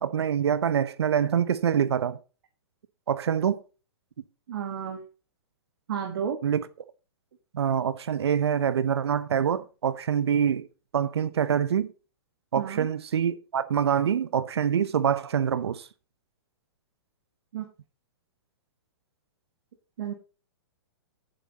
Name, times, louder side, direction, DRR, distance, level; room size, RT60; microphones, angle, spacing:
voice 1, 0.0-2.2 3.1-3.6 6.4-6.7 7.5-10.7 10.9-11.9 12.5-15.9, right 8 dB, 90° right, 0.8 m, -25 dB
voice 2, 4.5-5.0 5.9-6.4 12.5-12.9 17.5-17.6 20.0-20.1, right 8 dB, 70° right, 1.5 m, -31 dB
9.4 x 7.7 x 4.0 m
hypercardioid pair, 140°, 13 cm